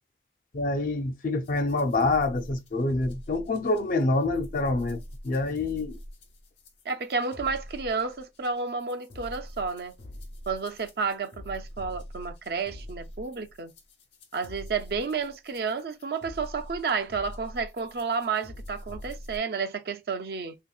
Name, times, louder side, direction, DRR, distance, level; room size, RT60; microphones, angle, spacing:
voice 1, 0.5-6.0, left 2 dB, 50° left, 0.4 m, -26 dB
sound 1, 1.4-19.4, left 1 dB, 90° left, 0.8 m, -44 dB
voice 2, 6.9-9.9 10.5-13.7 14.3-20.6, right 5 dB, 60° right, 0.5 m, -31 dB
3.4 x 2.8 x 2.3 m
head